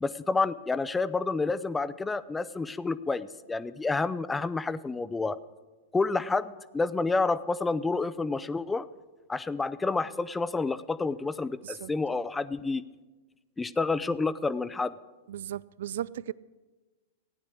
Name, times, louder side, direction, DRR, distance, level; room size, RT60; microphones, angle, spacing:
voice 1, 0.0-5.4 5.9-8.9 9.3-12.8 13.6-14.9, left 3 dB, 10° left, 0.5 m, -29 dB
voice 2, 15.3-16.3, right 11 dB, 70° right, 0.3 m, -36 dB
15.0 x 9.6 x 6.3 m
hypercardioid pair, 105°, 0 cm